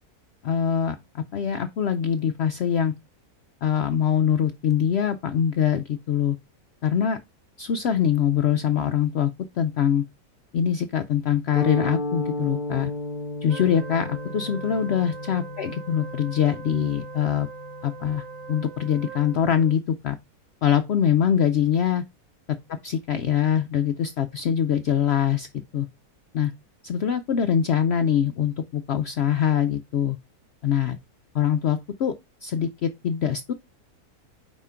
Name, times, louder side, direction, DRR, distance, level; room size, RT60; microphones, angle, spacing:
voice 1, 0.4-2.9 3.6-6.4 6.8-7.2 7.6-9.3 9.6-10.0 10.5-12.9 13.4-17.5 17.8-20.2 20.6-22.0 22.7-25.5 25.7-25.9 26.3-26.5 26.8-30.2 30.6-31.0 31.3-32.1 32.4-33.5, left 9 dB, 70° left, 0.6 m, -23 dB
sound 1, 11.6-19.9, left 2 dB, 35° left, 0.9 m, -35 dB
Wind instrument woodwind instrument, 13.5-19.8, right 5 dB, 60° right, 1.2 m, -41 dB
5.0 x 3.6 x 5.5 m
omnidirectional pair, 1.6 m